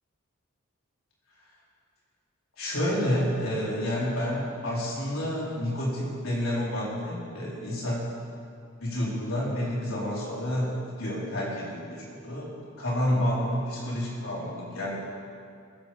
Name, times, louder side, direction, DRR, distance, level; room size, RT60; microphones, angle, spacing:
voice 1, 2.6-8.0 8.8-12.5 12.8-15.0, equal, 75° left, -6 dB, 4.5 m, -29 dB
22.0 x 7.9 x 5.4 m, 2.3 s
head